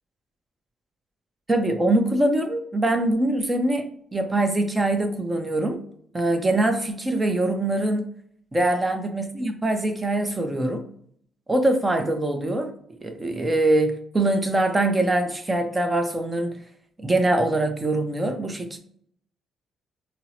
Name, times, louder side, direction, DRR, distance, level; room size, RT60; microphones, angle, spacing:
voice 1, 1.5-5.8 6.1-8.1 8.5-10.9 11.5-12.7 13.0-16.6 17.0-18.8, right 1 dB, 20° right, 6 dB, 0.6 m, -23 dB
4.4 x 2.0 x 2.8 m, 0.64 s
cardioid pair, 90°, 0 cm